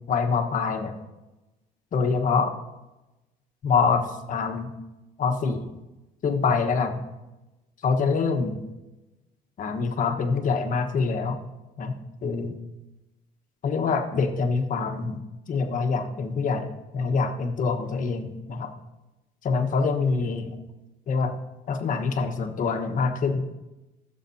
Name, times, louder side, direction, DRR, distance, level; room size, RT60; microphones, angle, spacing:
voice 1, 0.1-0.9 1.9-2.5 3.6-4.7 5.2-5.7 6.2-7.0 7.8-8.6 9.6-11.4 11.8-11.9 12.2-12.6 13.6-15.2 15.5-18.7 19.4-20.5 21.1-21.3 21.7-23.4, left 5 dB, 50° left, 5 dB, 1.3 m, -25 dB
16.5 x 7.5 x 2.8 m, 1.0 s
cardioid pair, 110°, 17 cm